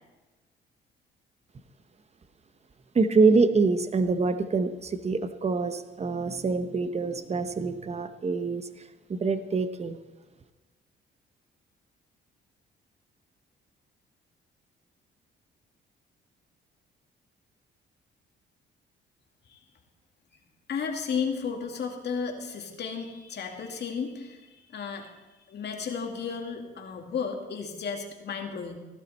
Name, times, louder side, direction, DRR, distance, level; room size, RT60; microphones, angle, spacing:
voice 1, 2.9-8.7 9.1-10.0, right 4 dB, 35° right, 10 dB, 1.0 m, -25 dB
voice 2, 20.7-25.1 25.5-28.8, left 6 dB, 55° left, 2 dB, 2.3 m, -33 dB
16.5 x 12.0 x 4.3 m, 1.2 s
cardioid pair, 90°, 20 cm